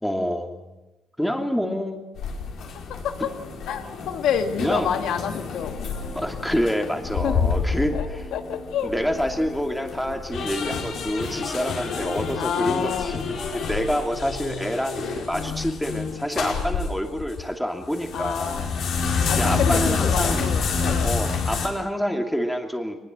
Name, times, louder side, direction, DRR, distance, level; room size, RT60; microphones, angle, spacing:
voice 1, 0.0-0.8 1.2-2.1 4.6-4.9 6.1-8.2 8.8-18.7 19.1-20.4 21.0-23.0, equal, ahead, 3 dB, 2.7 m, -27 dB
sound 1, 2.2-17.4 17.8-21.7, left 5 dB, 70° left, 4.7 m, -28 dB
voice 2, 2.9-3.3 3.7-5.8 7.2-7.5 7.8-8.9 12.4-13.2 18.1-18.7 19.3-21.2, left 8 dB, 85° left, 6 dB, 1.7 m, -28 dB
23.0 x 20.5 x 7.7 m, 1.0 s
cardioid pair, 120°, 0 cm